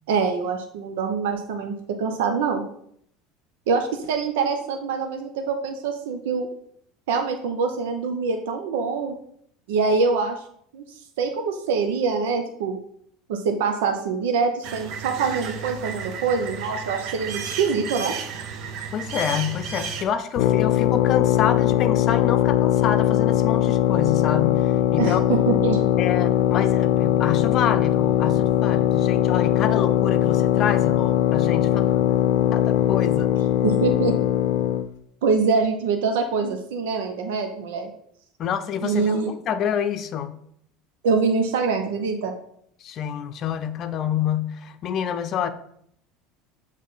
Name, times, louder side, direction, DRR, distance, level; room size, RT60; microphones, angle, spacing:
voice 1, 0.1-2.6 3.7-6.5 7.1-9.1 9.7-10.4 10.7-12.8 13.3-18.1 25.0-25.9 33.6-34.1 35.2-37.9 38.8-39.3 41.0-42.3, right 5 dB, 90° right, 4 dB, 0.8 m, -24 dB
sound 1, 14.6-20.0, right 6 dB, 55° right, 0.8 m, -33 dB
voice 2, 18.9-25.2 26.0-32.0 32.5-33.3 38.4-40.4 42.8-45.5, left 8 dB, 40° left, 9 dB, 0.6 m, -27 dB
sound 2, 20.4-34.9, left 11 dB, 85° left, 0.6 m, -20 dB
7.5 x 3.3 x 5.7 m, 0.68 s
supercardioid pair, 135°, 0 cm